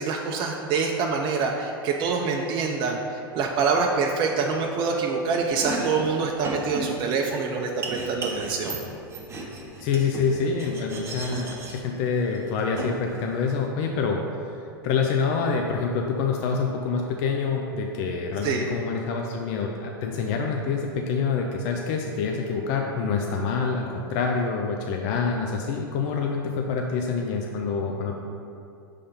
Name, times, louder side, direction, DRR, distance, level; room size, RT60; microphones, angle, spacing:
voice 1, 0.0-8.8 18.4-18.6, right 4 dB, 40° right, 1 dB, 0.5 m, -26 dB
Domestic sounds home sounds, 5.5-13.6, right 3 dB, 20° right, 1.0 m, -36 dB
voice 2, 9.8-14.2 14.8-28.2, left 5 dB, 50° left, 1 dB, 0.5 m, -26 dB
5.5 x 3.3 x 5.2 m, 2.6 s
hypercardioid pair, 105°, 12 cm